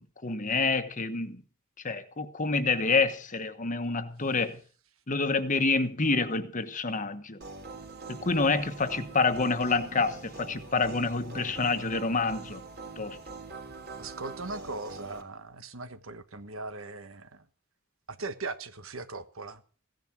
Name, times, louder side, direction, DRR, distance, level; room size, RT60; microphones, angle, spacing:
voice 1, 0.0-1.4 1.8-4.6 5.1-7.4 8.1-12.6 13.0-13.2, left 4 dB, 35° left, 1.3 m, -28 dB
sound 1, 7.4-15.2, right 3 dB, 50° right, 3.2 m, -44 dB
voice 2, 14.0-17.5 18.1-19.6, right 3 dB, 70° right, 1.3 m, -39 dB
16.0 x 11.0 x 6.2 m
head